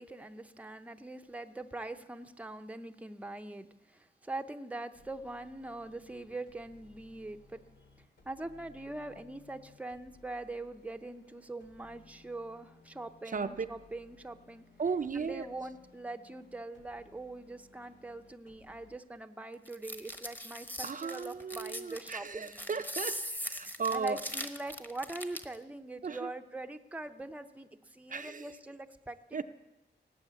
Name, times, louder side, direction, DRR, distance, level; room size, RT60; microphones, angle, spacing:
voice 1, 0.0-7.6 8.2-14.6 15.1-22.7 23.9-29.4, right 2 dB, 10° right, 6 dB, 0.7 m, -43 dB
sound 1, 4.9-19.0, left 3 dB, 80° left, 2.3 m, -61 dB
voice 2, 13.3-13.7 14.8-15.5 20.8-24.2 26.0-26.3 28.1-28.5 29.3-29.4, right 5 dB, 45° right, 7 dB, 0.6 m, -36 dB
sound 2, 19.7-25.6, equal, 10° left, 1.2 m, -40 dB
18.0 x 7.7 x 8.2 m, 1.0 s
wide cardioid pair, 100°, 18 cm